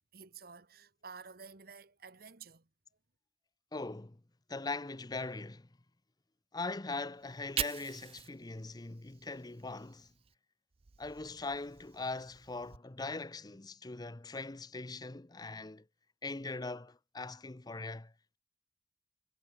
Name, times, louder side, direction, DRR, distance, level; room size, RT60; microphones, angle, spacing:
voice 1, 0.1-2.7, right 5 dB, 60° right, 1.6 m, -51 dB
voice 2, 3.7-4.2 4.5-5.7 6.5-10.1 11.0-15.8 16.2-18.4, left 3 dB, 25° left, 0.7 m, -41 dB
Fire, 7.2-10.3 10.7-12.8, right 9 dB, 35° right, 0.5 m, -44 dB
head